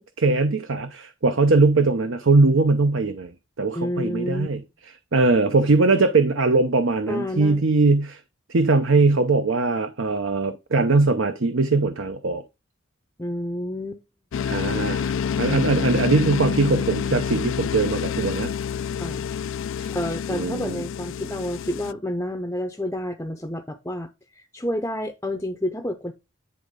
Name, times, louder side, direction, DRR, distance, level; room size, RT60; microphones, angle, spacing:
voice 1, 0.0-4.6 5.1-8.2 8.5-12.4 14.4-18.5 19.8-19.9 20.3-20.8, right 3 dB, 65° right, 0.7 m, -21 dB
voice 2, 3.8-4.5 7.1-7.6 13.2-14.0 19.0-19.3 19.9-26.1, left 1 dB, 10° left, 0.6 m, -29 dB
sound 1, 14.3-21.9, left 7 dB, 70° left, 0.3 m, -28 dB
9.8 x 3.6 x 5.1 m
head